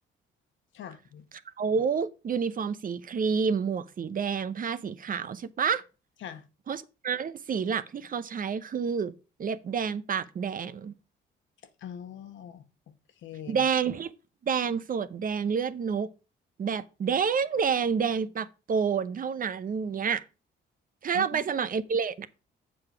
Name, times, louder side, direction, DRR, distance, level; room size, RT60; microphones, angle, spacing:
voice 1, 0.7-1.2 6.2-6.4 11.8-12.6 13.2-13.6 21.1-21.4, left 9 dB, 70° left, 1.2 m, -42 dB
voice 2, 1.6-5.8 6.7-9.1 9.4-10.9 13.5-14.1 14.4-16.1 16.6-20.2 21.0-22.3, right 6 dB, 45° right, 0.7 m, -29 dB
7.8 x 5.0 x 5.8 m
cardioid pair, 90°, 20 cm